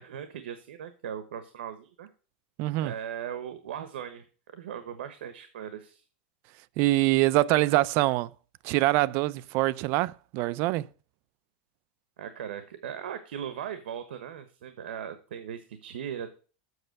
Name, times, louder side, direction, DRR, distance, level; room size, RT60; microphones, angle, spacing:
voice 1, 0.0-2.1 2.8-4.2 4.5-6.0 12.2-16.3, right 9 dB, 90° right, 1.1 m, -38 dB
voice 2, 2.6-2.9 6.8-8.3 8.6-10.9, right 18 dB, 40° right, 0.4 m, -24 dB
7.9 x 6.5 x 7.8 m
supercardioid pair, 155°, 6 cm